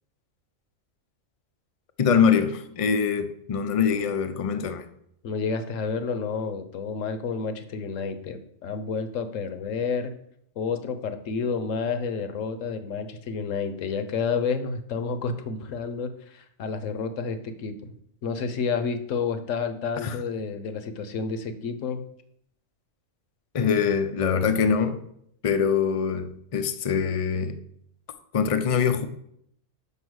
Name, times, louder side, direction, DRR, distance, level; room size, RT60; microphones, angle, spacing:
voice 1, 2.0-4.9 20.0-20.2 23.5-25.0 25.4-27.6 28.3-29.1, left 6 dB, 50° left, 0.4 m, -23 dB
voice 2, 5.2-10.1 10.6-17.9 18.2-22.0, left 5 dB, 70° left, 1.2 m, -30 dB
5.6 x 5.6 x 6.3 m
omnidirectional pair, 1.4 m